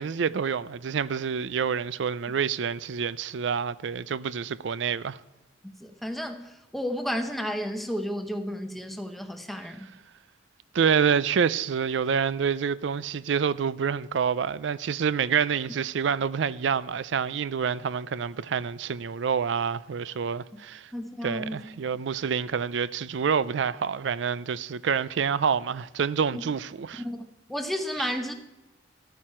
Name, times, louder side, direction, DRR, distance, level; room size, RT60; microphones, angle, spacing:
voice 1, 0.0-5.2 10.7-20.9 21.2-27.0, right 6 dB, 75° right, 0.4 m, -27 dB
voice 2, 5.6-9.9 20.9-21.6 26.3-26.4 27.0-27.2 27.5-28.3, equal, ahead, 0.8 m, -32 dB
13.5 x 9.3 x 4.4 m
head